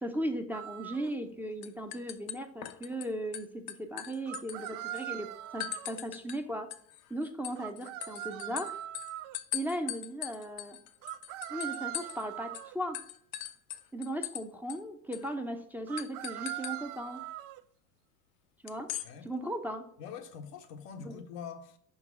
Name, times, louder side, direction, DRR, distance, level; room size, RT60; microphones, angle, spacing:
voice 1, 0.0-5.3 5.5-6.7 7.1-8.7 9.5-10.8 11.5-13.0 13.9-17.2 18.6-18.9 19.2-19.8 21.0-21.2, right 1 dB, 5° right, 0.7 m, -37 dB
sound 1, 0.5-1.1 4.3-6.0 7.6-9.4 11.0-12.8 15.9-17.6, right 13 dB, 45° right, 0.4 m, -41 dB
sound 2, 1.1-1.3 1.6-3.1 3.3-5.0 5.6-6.4 6.7-12.3 12.5-12.7 12.9-14.4 14.7-14.8 15.1-15.3 16.0-16.8 18.7-19.1, left 13 dB, 50° left, 0.7 m, -40 dB
voice 2, 20.0-21.8, left 7 dB, 75° left, 1.1 m, -44 dB
5.5 x 4.0 x 5.9 m
hypercardioid pair, 75°, 47 cm